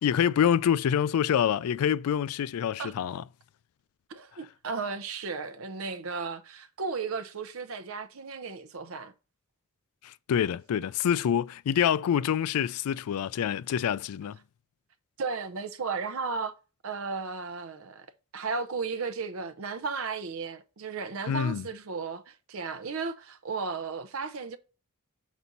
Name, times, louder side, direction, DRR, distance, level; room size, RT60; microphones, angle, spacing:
voice 1, 0.0-3.2 10.0-14.4 21.3-21.7, left 8 dB, 80° left, 0.3 m, -26 dB
voice 2, 4.1-9.1 15.2-16.5 16.8-18.1 18.3-24.6, right 4 dB, 65° right, 0.7 m, -34 dB
6.1 x 4.1 x 3.9 m
head